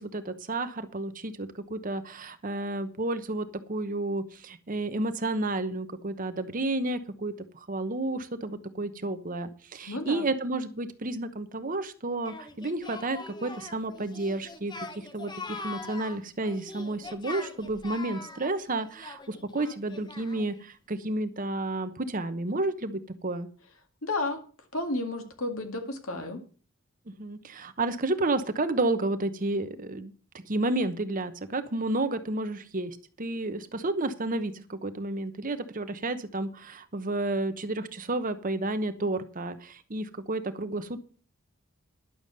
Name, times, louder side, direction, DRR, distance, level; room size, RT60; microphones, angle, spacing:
voice 1, 0.0-23.5 27.2-30.1 30.5-41.0, right 2 dB, 40° right, 10 dB, 1.0 m, -31 dB
voice 2, 9.9-10.3 24.0-24.4 24.7-26.4, left 2 dB, 75° left, 4 dB, 2.1 m, -32 dB
Singing, 12.2-20.6, left 3 dB, 20° left, 0.9 m, -42 dB
11.0 x 7.0 x 6.7 m, 0.39 s
head